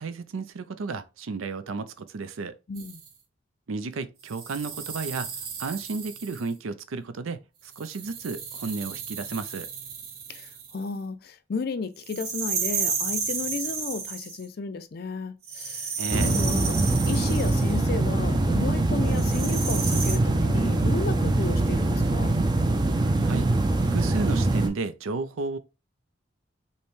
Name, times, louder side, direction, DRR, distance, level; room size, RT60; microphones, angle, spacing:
voice 1, 0.0-2.6 3.7-5.3 5.6-9.7 16.0-16.4 23.2-23.5 23.9-25.6, right 4 dB, 85° right, 0.5 m, -33 dB
voice 2, 2.7-3.0 10.3-22.4, left 4 dB, 50° left, 0.4 m, -34 dB
sound 1, 2.7-3.1 4.2-6.5 7.7-10.9 12.0-14.4 15.4-17.8 19.1-20.2, right 5 dB, 50° right, 1.1 m, -33 dB
sound 2, 16.1-24.7, right 2 dB, 20° right, 0.4 m, -23 dB
5.4 x 2.2 x 3.1 m
head